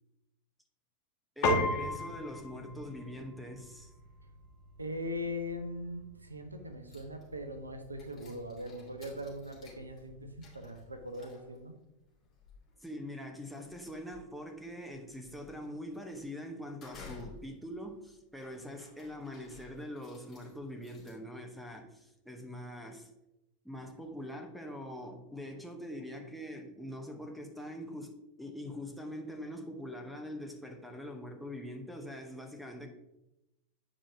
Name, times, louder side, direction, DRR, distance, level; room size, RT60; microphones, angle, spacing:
Piano, 1.4-11.0, left 1 dB, 45° left, 1.6 m, -38 dB
voice 1, 1.4-3.9 12.8-23.1 23.6-32.9, equal, ahead, 3 dB, 0.9 m, -43 dB
voice 2, 4.8-11.7, left 1 dB, 80° right, 7 dB, 0.8 m, -40 dB
sound 1, 6.9-7.5 7.8-21.1, left 5 dB, 30° left, 2.4 m, -56 dB
8.7 x 4.9 x 2.8 m, 0.93 s
figure-of-eight pair, 90°, 0 cm